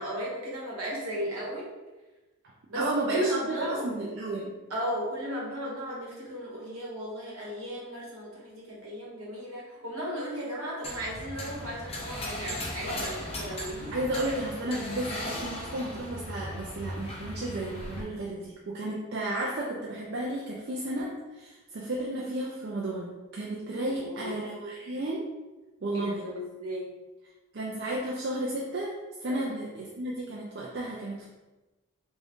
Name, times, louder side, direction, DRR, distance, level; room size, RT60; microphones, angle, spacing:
voice 1, 0.0-1.7 2.7-3.8 4.7-13.9 19.1-19.3 23.9-24.4 25.9-26.9 29.3-29.5, equal, 65° right, -4 dB, 1.3 m, -35 dB
voice 2, 2.7-4.5 13.9-25.3 25.8-26.3 27.5-31.3, right 1 dB, 50° right, -3 dB, 0.4 m, -33 dB
sound 1, 10.8-18.0, left 1 dB, 25° left, 0.6 m, -37 dB
3.6 x 2.6 x 3.5 m, 1.1 s
head